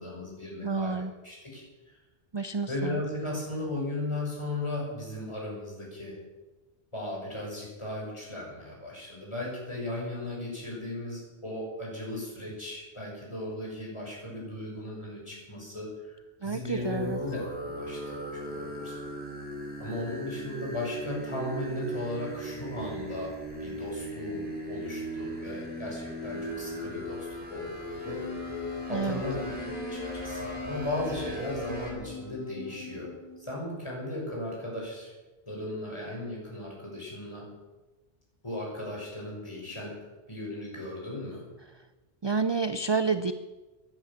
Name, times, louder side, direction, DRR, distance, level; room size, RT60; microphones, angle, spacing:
voice 1, 0.0-2.0 2.7-6.2 6.9-19.0 19.8-23.3 23.6-28.2 28.9-33.1 33.4-35.1 35.5-37.5 38.4-40.0 40.3-41.4, left 1 dB, 30° left, -4 dB, 6.7 m, -36 dB
voice 2, 0.6-1.1 2.3-3.0 16.4-17.2 28.9-29.2 42.2-43.3, right 4 dB, 35° right, 11 dB, 0.4 m, -29 dB
sound 1, 16.8-31.9, right 1 dB, 10° right, 3.8 m, -38 dB
Wind instrument woodwind instrument, 28.0-33.5, left 4 dB, 80° left, 5.3 m, -41 dB
15.5 x 11.5 x 7.3 m, 1.2 s
omnidirectional pair, 1.0 m